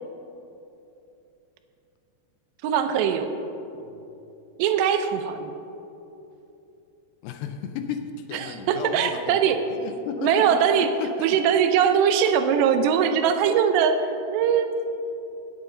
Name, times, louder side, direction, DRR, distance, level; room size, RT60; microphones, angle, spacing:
voice 1, 2.6-3.3 4.6-5.5 8.3-9.6 10.2-10.9 11.2-14.0 14.3-14.7, right 8 dB, 85° right, 7 dB, 2.9 m, -21 dB
voice 2, 7.2-11.4, left 7 dB, 80° left, 7 dB, 2.6 m, -34 dB
16.0 x 8.0 x 3.8 m, 2.9 s
omnidirectional pair, 4.9 m